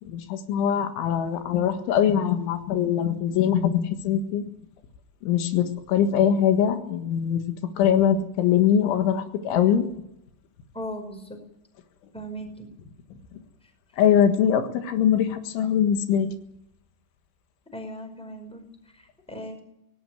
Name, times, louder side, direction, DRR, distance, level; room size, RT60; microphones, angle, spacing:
voice 1, 0.0-4.4 5.2-7.5 7.8-9.9 14.0-16.3, left 9 dB, 80° left, 7 dB, 4.0 m, -22 dB
voice 2, 10.7-11.4 12.1-12.7 13.6-13.7 17.7-19.6, equal, ahead, 5 dB, 4.3 m, -38 dB
18.0 x 16.5 x 9.2 m, 0.79 s
omnidirectional pair, 5.4 m